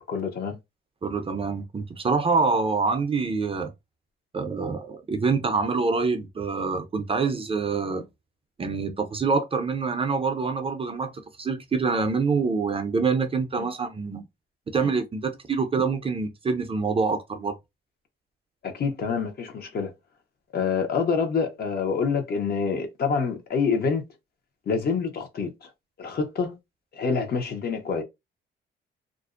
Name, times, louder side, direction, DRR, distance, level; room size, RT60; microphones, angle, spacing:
voice 1, 0.1-0.6 13.6-13.7 14.8-14.9 18.6-19.9 20.5-24.0 24.7-25.5 26.0-26.6 26.9-28.0, left 5 dB, 50° left, 0.8 m, -26 dB
voice 2, 1.0-3.7 4.3-8.0 8.6-11.1 11.4-14.2 14.7-17.6, right 4 dB, 30° right, 0.5 m, -26 dB
2.5 x 2.0 x 2.4 m
cardioid pair, 90°, 20 cm